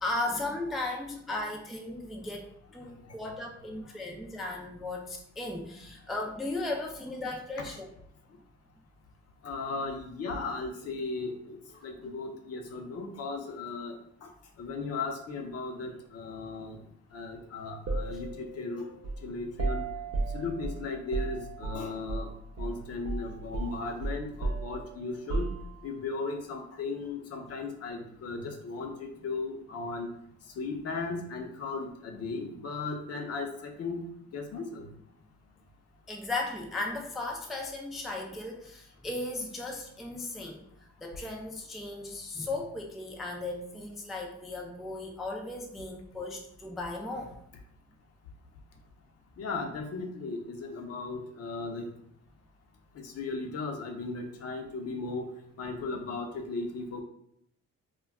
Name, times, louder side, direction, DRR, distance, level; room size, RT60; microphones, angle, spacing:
voice 1, 0.0-7.9 36.1-40.6 41.0-47.4, left 2 dB, ahead, 0 dB, 0.3 m, -36 dB
voice 2, 9.4-14.3 14.6-16.8 17.1-18.9 19.2-19.8 20.3-22.3 22.6-25.5 25.8-30.1 30.6-34.9 49.4-51.8 52.9-55.3 55.6-57.0, left 3 dB, 55° left, 3 dB, 0.6 m, -36 dB
sound 1, 17.9-22.3 22.6-22.8 23.0-26.0, right 3 dB, 60° right, 0.6 m, -35 dB
2.2 x 2.2 x 3.4 m, 0.70 s
cardioid pair, 90°, 30 cm